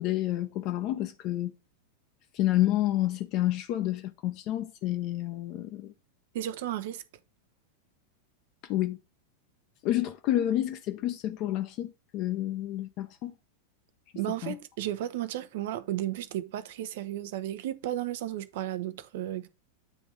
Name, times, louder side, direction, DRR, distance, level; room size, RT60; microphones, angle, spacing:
voice 1, 0.0-1.5 2.3-5.9 8.6-9.0 9.8-13.3 14.4-14.6, left 14 dB, 40° left, 0.7 m, -29 dB
voice 2, 6.3-7.0 14.1-19.5, right 12 dB, 55° right, 0.8 m, -33 dB
9.2 x 3.5 x 5.2 m
figure-of-eight pair, 90°, 0 cm